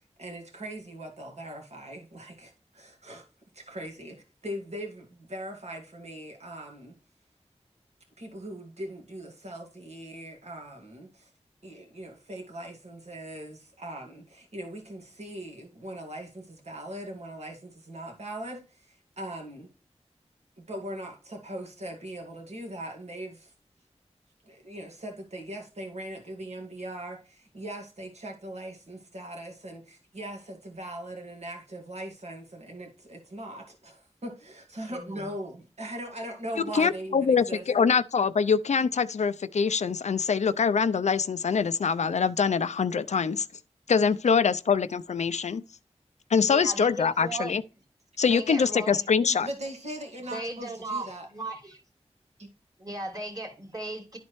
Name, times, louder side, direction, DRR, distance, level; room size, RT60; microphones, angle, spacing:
voice 1, 0.2-3.3 3.5-6.9 8.2-11.3 11.6-19.7 20.6-23.5 24.4-37.6 49.3-51.3 52.4-52.5, right 1 dB, 70° right, 2.1 m, -40 dB
voice 2, 34.9-35.3 46.5-47.6 48.3-49.1 50.3-51.8 52.8-54.2, right 2 dB, 35° right, 2.7 m, -36 dB
voice 3, 36.7-43.5 43.9-45.6 46.3-47.6 48.2-49.5, left 6 dB, 80° left, 0.5 m, -24 dB
12.0 x 4.2 x 3.1 m
wide cardioid pair, 75°, 12 cm